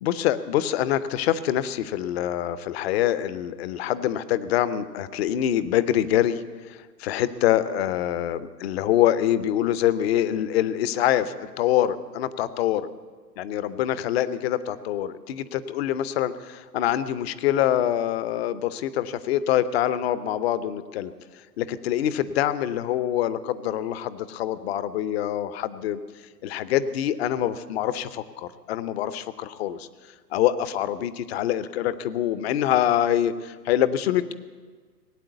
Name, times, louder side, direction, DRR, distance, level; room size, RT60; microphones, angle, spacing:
voice 1, 0.0-6.4 6.7-12.9 13.4-21.1 21.6-26.0 26.4-29.9 30.3-34.3, left 11 dB, 40° left, 15 dB, 0.8 m, -25 dB
18.0 x 9.0 x 8.1 m, 1.5 s
figure-of-eight pair, 115°, 49 cm